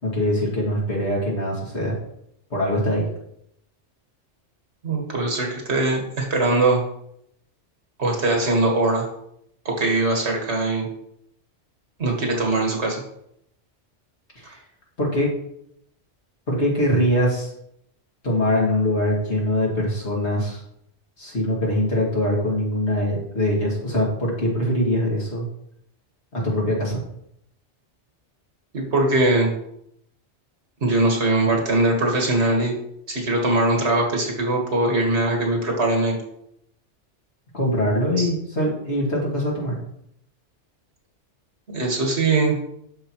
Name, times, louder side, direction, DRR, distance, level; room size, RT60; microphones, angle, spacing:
voice 1, 0.0-1.9 2.5-3.1 14.4-14.6 15.0-15.3 16.5-17.5 18.2-20.6 21.2-25.5 26.3-27.0 37.5-39.8, equal, 70° left, -4 dB, 2.5 m, -23 dB
voice 2, 4.8-6.8 8.0-9.1 9.7-10.9 12.0-13.0 28.7-29.5 30.8-32.7 33.1-36.2 38.2-38.3 41.7-42.6, right 2 dB, 70° right, 0 dB, 1.8 m, -21 dB
12.0 x 4.6 x 3.0 m, 0.74 s
omnidirectional pair, 1.2 m